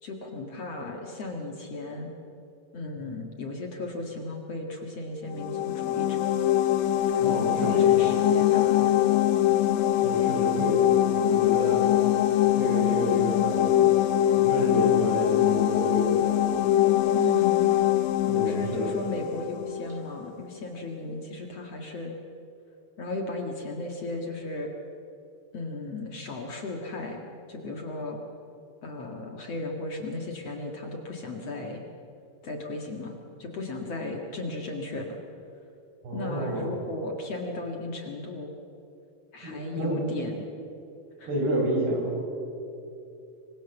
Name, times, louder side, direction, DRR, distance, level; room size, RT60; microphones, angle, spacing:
voice 1, 0.0-2.1 2.7-6.3 7.1-9.0 17.1-17.8 18.2-22.1 23.0-24.7 25.5-28.2 28.8-31.8 32.4-35.2 36.1-38.5 39.3-40.5 41.2-41.3, left 2 dB, 45° left, 2 dB, 2.5 m, -36 dB
sound 1, 5.3-20.0, left 12 dB, 85° left, 1.6 m, -23 dB
voice 2, 7.2-7.9 10.0-10.8 11.2-11.8 12.6-14.0 14.4-16.3 18.3-18.9 36.0-36.8 39.4-40.0 41.3-42.2, right 1 dB, 80° right, 0 dB, 7.8 m, -29 dB
25.5 x 24.5 x 7.3 m, 2.8 s
omnidirectional pair, 4.6 m